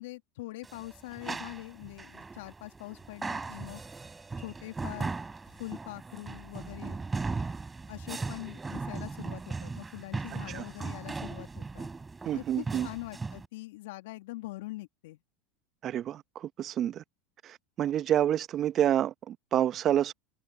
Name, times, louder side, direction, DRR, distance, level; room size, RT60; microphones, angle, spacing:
voice 1, 0.0-3.8 4.4-5.2 5.5-7.0 7.9-11.9 12.3-15.2, left 19 dB, 70° left, 2.3 m, -43 dB
sound 1, 0.6-13.4, right 4 dB, 15° right, 4.1 m, -38 dB
voice 2, 12.2-12.9 15.8-17.0 17.4-20.1, right 11 dB, 40° right, 1.1 m, -28 dB
open air
hypercardioid pair, 85°, 0 cm